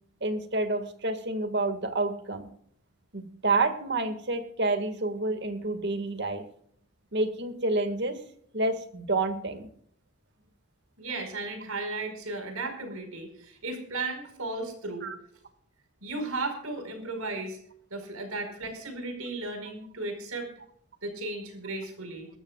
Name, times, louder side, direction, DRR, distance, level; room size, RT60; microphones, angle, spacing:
voice 1, 0.2-2.5 3.1-6.4 7.1-8.2 8.5-9.7 15.0-15.2, right 2 dB, 50° right, 8 dB, 2.0 m, -29 dB
voice 2, 11.0-15.1 16.0-17.6 17.9-20.5 21.0-22.3, right 2 dB, 80° right, 6 dB, 4.9 m, -35 dB
23.0 x 13.5 x 2.4 m, 0.64 s
head